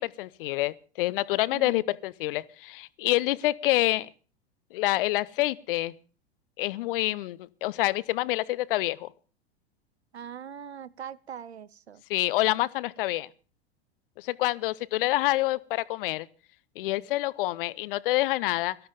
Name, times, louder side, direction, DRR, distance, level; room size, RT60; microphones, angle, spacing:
voice 1, 0.0-4.1 4.7-5.9 6.6-9.1 12.1-13.3 14.2-16.3 16.8-18.8, left 17 dB, 60° left, 0.8 m, -27 dB
voice 2, 1.5-1.8 10.1-12.0, right 8 dB, 85° right, 0.7 m, -41 dB
17.5 x 13.0 x 5.1 m
figure-of-eight pair, 90°, 32 cm